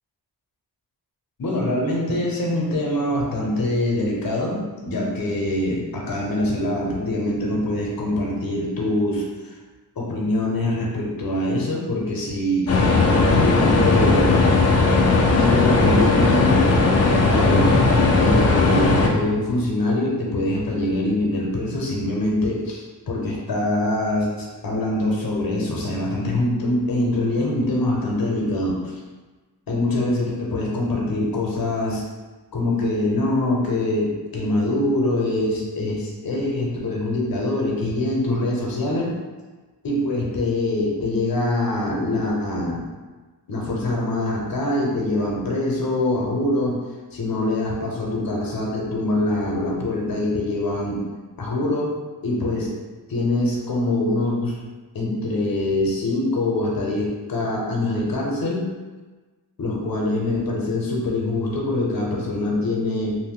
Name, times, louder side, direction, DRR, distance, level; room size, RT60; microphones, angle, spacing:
voice 1, 1.4-9.5 9.9-14.5 15.3-16.7 17.0-17.7 18.2-29.0 29.7-32.0 32.5-39.1 39.8-42.9 43.5-46.8 47.1-51.0 51.4-51.9 52.2-52.7 53.1-54.6 54.9-58.7 59.6-63.2, left 1 dB, 55° left, -3 dB, 0.8 m, -24 dB
sound 1, 12.7-19.1, left 3 dB, 35° left, 0.4 m, -17 dB
2.7 x 2.0 x 3.6 m, 1.3 s
cardioid pair, 70°, 43 cm